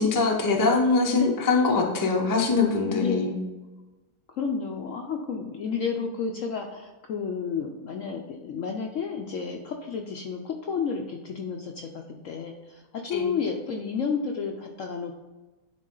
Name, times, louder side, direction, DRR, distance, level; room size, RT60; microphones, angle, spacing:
voice 1, 0.0-3.3 13.1-13.3, left 4 dB, 25° left, 1 dB, 0.4 m, -23 dB
voice 2, 2.9-3.5 4.4-15.2, left 5 dB, 65° left, 2 dB, 0.8 m, -31 dB
10.5 x 3.8 x 3.8 m, 1.1 s
omnidirectional pair, 1.9 m